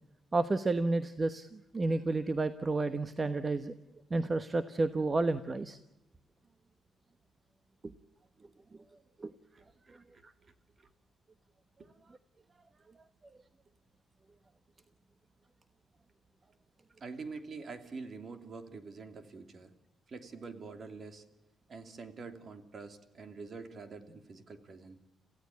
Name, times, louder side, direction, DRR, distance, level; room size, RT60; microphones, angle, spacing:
voice 1, 0.3-3.7 4.1-5.8 9.2-9.3, right 3 dB, 30° right, 11 dB, 1.1 m, -31 dB
voice 2, 9.5-10.5 11.8-11.9 17.0-19.7 20.1-21.2 21.7-25.0, right 4 dB, 45° right, 8 dB, 2.8 m, -46 dB
27.5 x 16.0 x 8.5 m, 1.0 s
cardioid pair, 95°, 0 cm